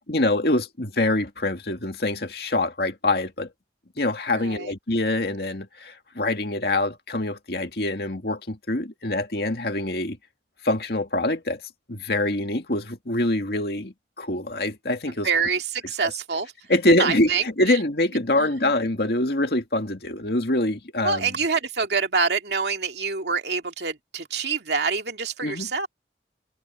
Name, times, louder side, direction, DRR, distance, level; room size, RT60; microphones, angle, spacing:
voice 1, 0.1-3.5 4.0-10.2 10.6-11.6 11.9-15.3 16.0-16.1 16.7-21.3 25.4-25.7, left 1 dB, 65° left, 2.1 m, -25 dB
voice 2, 4.3-4.7 15.1-16.5 17.0-17.8 18.4-18.5 21.0-25.9, right 5 dB, 75° right, 2.3 m, -26 dB
head